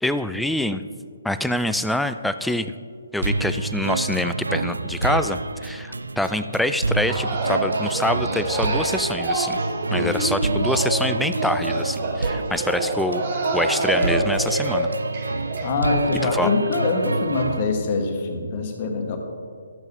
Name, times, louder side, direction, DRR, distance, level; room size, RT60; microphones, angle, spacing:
voice 1, 0.0-0.8 1.2-2.7 3.1-9.6 9.9-13.2 13.5-14.9 16.2-16.5, left 1 dB, ahead, 10 dB, 0.3 m, -25 dB
sound 1, 3.2-17.6, right 3 dB, 75° right, 0.5 m, -28 dB
sound 2, 7.1-15.7, right 2 dB, 45° right, 1.4 m, -26 dB
voice 2, 15.6-19.2, left 3 dB, 35° left, 2 dB, 1.6 m, -24 dB
13.5 x 8.0 x 3.6 m, 2.1 s
figure-of-eight pair, 140°, 0 cm